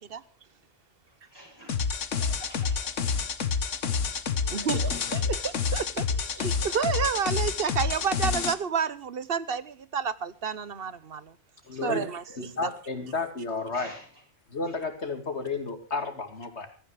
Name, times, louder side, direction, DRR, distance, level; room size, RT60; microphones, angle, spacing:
voice 1, 1.1-1.8 2.2-3.6 4.2-5.5 6.3-6.7 7.9-8.0 11.6-12.6 13.7-14.2 14.6-14.8, right 1 dB, 20° right, 8.0 m, -48 dB
sound 1, 1.7-8.5, left 6 dB, 80° left, 1.5 m, -28 dB
voice 2, 5.7-6.1 6.4-11.3 11.8-12.1, right 6 dB, 55° right, 1.0 m, -29 dB
voice 3, 11.7-12.0 12.6-13.9 14.5-16.7, left 4 dB, 65° left, 2.7 m, -32 dB
16.5 x 14.0 x 4.8 m
omnidirectional pair, 1.2 m